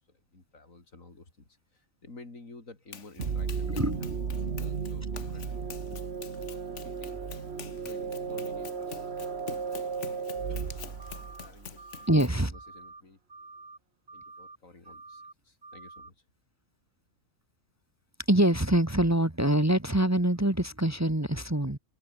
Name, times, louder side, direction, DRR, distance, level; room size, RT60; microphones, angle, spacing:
voice 1, 0.1-5.5 6.5-7.2 7.8-9.4 10.1-10.8 11.1-13.2 14.1-16.3, left 3 dB, 85° left, 4.4 m, -53 dB
Run, 2.9-12.4, left 6 dB, 65° left, 1.7 m, -47 dB
sound 1, 3.2-11.8, right 5 dB, 55° right, 1.7 m, -35 dB
sound 2, 11.0-11.5 11.8-12.2 12.5-13.0 13.3-13.8 14.1-14.6 14.8-15.3 15.6-16.1, right 3 dB, 30° right, 2.0 m, -48 dB
voice 2, 12.1-12.5 18.3-21.8, right 1 dB, 15° right, 1.4 m, -24 dB
omnidirectional pair, 1.4 m